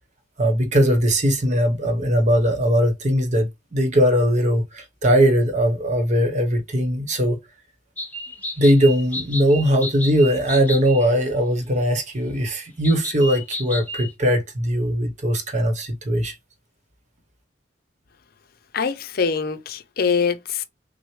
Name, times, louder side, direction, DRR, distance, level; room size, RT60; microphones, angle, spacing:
voice 1, 0.4-7.4 8.6-16.3, equal, 40° right, 1.0 m, -20 dB
sound 1, 8.0-11.1 12.8-14.1, left 1 dB, 10° left, 0.9 m, -32 dB
voice 2, 18.7-20.6, left 5 dB, 55° left, 0.5 m, -23 dB
6.1 x 2.1 x 3.1 m
head